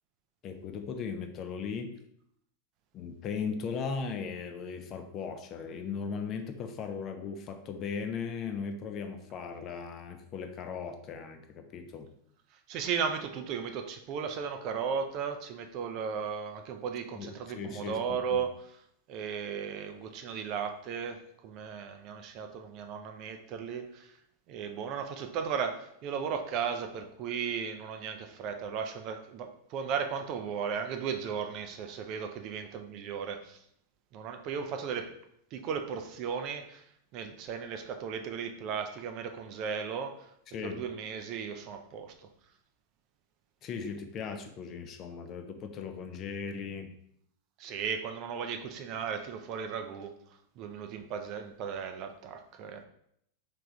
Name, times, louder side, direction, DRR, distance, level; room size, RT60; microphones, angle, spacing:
voice 1, 0.4-2.0 2.9-12.1 17.2-18.4 40.5-40.8 43.6-46.9, left 5 dB, 35° left, 7 dB, 0.5 m, -38 dB
voice 2, 12.7-18.8 19.1-24.2 24.5-33.6 34.1-35.1 35.5-36.9 37.1-40.3 40.6-42.3 47.6-50.1 50.6-52.8, right 6 dB, 40° right, 6 dB, 0.4 m, -36 dB
3.4 x 3.2 x 3.9 m, 0.72 s
figure-of-eight pair, 90°, 0 cm